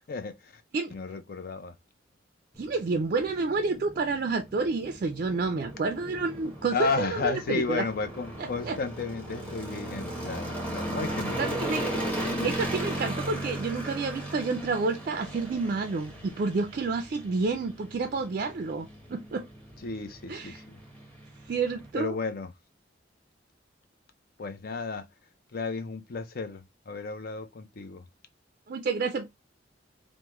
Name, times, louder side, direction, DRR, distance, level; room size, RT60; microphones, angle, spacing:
voice 1, 0.1-0.6 0.9-1.8 6.7-12.7 19.8-20.8 21.9-22.5 24.4-25.1 25.5-28.1, left 4 dB, 55° left, 0.5 m, -33 dB
sound 1, 2.5-21.9, right 1 dB, 5° left, 0.9 m, -37 dB
voice 2, 2.6-7.9 8.6-8.8 11.4-11.8 12.4-19.5 20.3-20.6 21.5-22.2 28.7-29.3, right 4 dB, 50° right, 0.4 m, -29 dB
3.5 x 2.1 x 3.0 m
head